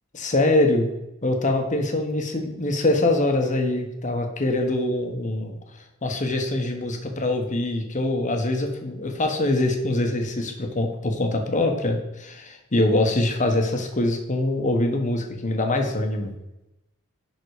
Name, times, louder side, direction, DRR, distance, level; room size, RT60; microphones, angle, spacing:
voice 1, 0.1-0.9 1.2-5.6 6.0-16.3, left 2 dB, 35° left, 4 dB, 1.2 m, -24 dB
11.0 x 3.9 x 4.9 m, 0.92 s
head